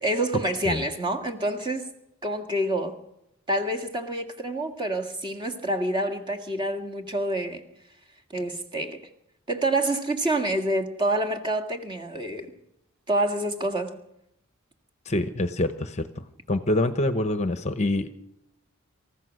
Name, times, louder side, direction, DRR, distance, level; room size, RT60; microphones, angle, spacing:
voice 1, 0.0-1.9 2.2-3.0 3.5-7.6 8.3-9.0 9.5-12.5 13.1-13.9, right 1 dB, 20° right, 5 dB, 1.9 m, -27 dB
voice 2, 15.1-16.0 16.5-18.1, left 1 dB, 30° left, 10 dB, 0.9 m, -25 dB
27.5 x 15.0 x 6.4 m, 0.82 s
head